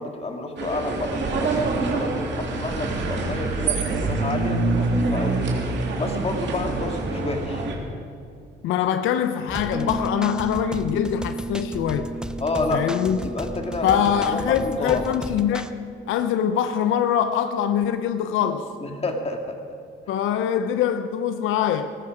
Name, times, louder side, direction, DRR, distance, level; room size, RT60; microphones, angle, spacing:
voice 1, 0.0-5.4 6.0-7.7 12.4-12.9 13.2-15.0 18.8-19.6, left 2 dB, 30° left, 2.3 m, -29 dB
sound 1, 0.6-7.8, right 3 dB, 65° right, 2.7 m, -25 dB
voice 2, 8.6-12.1 12.7-13.4 13.8-15.7 16.1-18.7 20.1-21.9, left 9 dB, 90° left, 0.7 m, -23 dB
sound 2, 9.5-15.7, right 1 dB, 5° right, 0.7 m, -36 dB
Bass guitar, 9.7-19.4, right 2 dB, 30° right, 3.6 m, -36 dB
18.5 x 14.0 x 5.0 m
cardioid pair, 90°, 20 cm